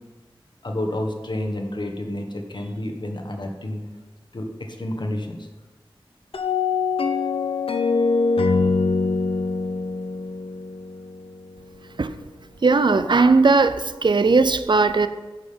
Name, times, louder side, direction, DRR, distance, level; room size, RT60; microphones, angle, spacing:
voice 1, 0.6-3.8 4.3-5.5, left 1 dB, 55° left, 3 dB, 1.4 m, -29 dB
sound 1, 6.3-11.5, left 4 dB, 85° left, 0.7 m, -23 dB
voice 2, 12.6-15.1, right 4 dB, 55° right, 11 dB, 0.6 m, -18 dB
10.5 x 6.1 x 5.2 m, 1.2 s
wide cardioid pair, 70°, 9 cm